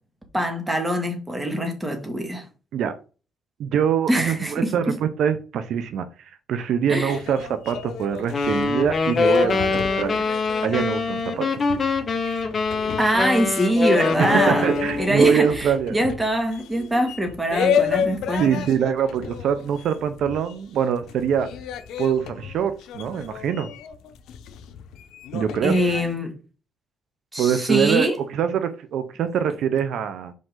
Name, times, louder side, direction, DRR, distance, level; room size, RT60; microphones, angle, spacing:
voice 1, 0.3-2.5 4.1-5.0 6.9-7.2 13.0-18.6 25.6-26.3 27.3-28.2, right 1 dB, 15° right, 1.9 m, -23 dB
voice 2, 3.6-10.3 10.6-11.5 14.2-16.0 18.4-21.5 22.0-23.7 25.3-25.7 27.4-30.3, right 8 dB, 75° right, 0.7 m, -24 dB
sound 1, 7.0-20.8 21.0-26.1, left 8 dB, 85° left, 0.7 m, -31 dB
sound 2, 8.3-15.1, left 4 dB, 35° left, 1.3 m, -24 dB
5.4 x 5.3 x 3.8 m
cardioid pair, 90°, 0 cm